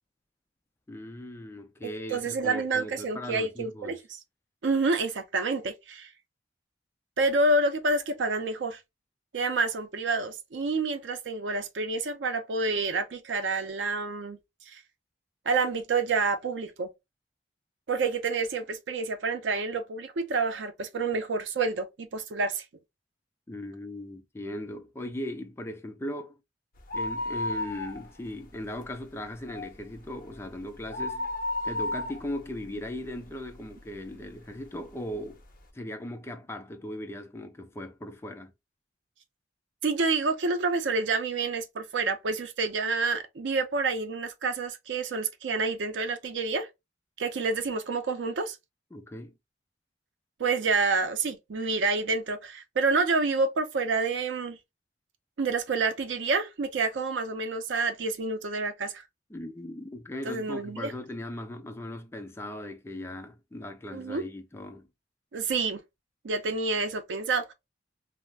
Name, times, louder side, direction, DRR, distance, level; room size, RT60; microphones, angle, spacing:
voice 1, 0.9-4.0 23.5-26.4 26.9-31.3 31.6-35.4 35.7-38.5 48.9-49.3 59.3-64.9, left 1 dB, 15° left, 0.4 m, -38 dB
voice 2, 1.8-4.0 4.6-6.1 7.2-8.8 9.3-14.4 14.7-14.8 15.5-16.9 17.9-22.6 39.8-46.7 47.2-48.6 50.4-54.6 55.4-59.0 60.2-60.9 63.9-64.2 65.3-65.8 66.2-67.5, right 3 dB, 90° right, 0.5 m, -28 dB
sound 1, 26.8-28.4 28.7-28.8 29.3-33.7 34.2-34.3 35.1-35.2 35.4-35.5, left 2 dB, 50° left, 0.6 m, -33 dB
2.4 x 2.0 x 3.3 m
head